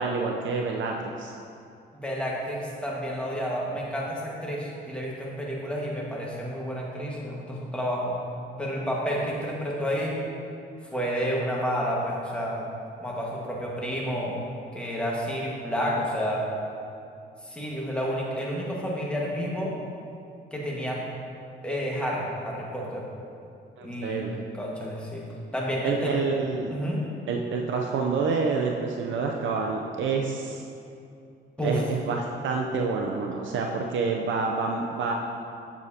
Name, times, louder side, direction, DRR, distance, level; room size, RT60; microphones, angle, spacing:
voice 1, 0.0-1.3 23.8-24.4 25.8-26.8 27.3-30.6 31.6-35.1, right 4 dB, 75° right, 1 dB, 0.6 m, -28 dB
voice 2, 1.9-8.1 8.6-10.2 10.9-12.7 13.0-14.3 14.7-16.5 17.4-19.7 20.5-21.0 21.6-23.0 23.8-24.2 24.6-25.2 25.5-26.1 26.7-27.0 31.6-31.8, equal, 5° left, -4 dB, 1.6 m, -30 dB
7.9 x 7.2 x 2.8 m, 2.5 s
cardioid pair, 90°, 20 cm